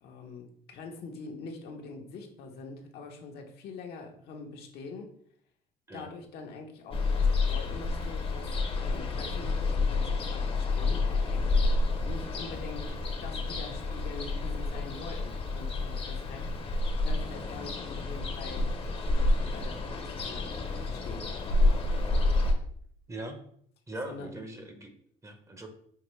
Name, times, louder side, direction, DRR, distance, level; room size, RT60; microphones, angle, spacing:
voice 1, 0.0-5.1 5.9-11.6 12.0-13.0 13.2-18.7 19.0-21.3 24.0-24.3, left 3 dB, 70° left, 2 dB, 0.9 m, -44 dB
Ocean, 6.9-22.5, left 2 dB, 35° left, 0.8 m, -29 dB
voice 2, 23.9-24.9 25.2-25.7, right 1 dB, 15° right, 5 dB, 0.7 m, -40 dB
5.7 x 2.7 x 3.1 m, 0.63 s
cardioid pair, 110°, 17 cm